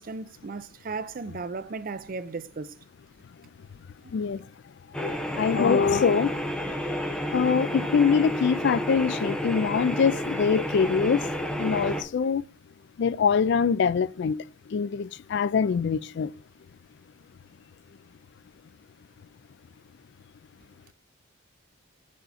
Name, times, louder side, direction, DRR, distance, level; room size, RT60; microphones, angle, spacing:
voice 1, 0.0-2.7, right 4 dB, 45° right, 0.5 m, -35 dB
sound 1, 4.9-12.0, equal, 5° left, 0.8 m, -30 dB
voice 2, 5.0-6.3 7.3-11.2 11.6-12.4 13.0-14.4 14.7-16.3, left 6 dB, 55° left, 0.3 m, -24 dB
6.4 x 5.7 x 4.1 m
head